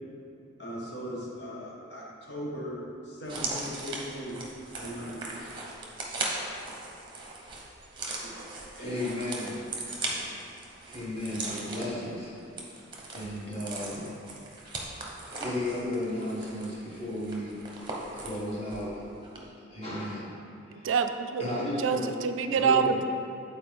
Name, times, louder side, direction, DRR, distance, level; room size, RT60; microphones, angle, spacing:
voice 1, 0.6-2.8 3.1-4.3 4.8-5.4 8.2-8.3 8.8-9.0 11.3-11.4, equal, 60° left, -4 dB, 1.3 m, -39 dB
sound 1, 3.2-18.9 19.2-19.4, right 2 dB, 25° right, 0.9 m, -39 dB
voice 2, 8.8-9.6 10.9-12.3 13.1-14.1 15.3-17.6 18.1-19.0 19.3-20.3 20.7-20.9 21.4-22.1 22.6-23.0, left 1 dB, 30° left, -7 dB, 1.6 m, -34 dB
voice 3, 20.8-21.5 21.8-23.0, right 6 dB, 85° right, 7 dB, 0.4 m, -26 dB
8.3 x 4.4 x 3.4 m, 2.5 s
head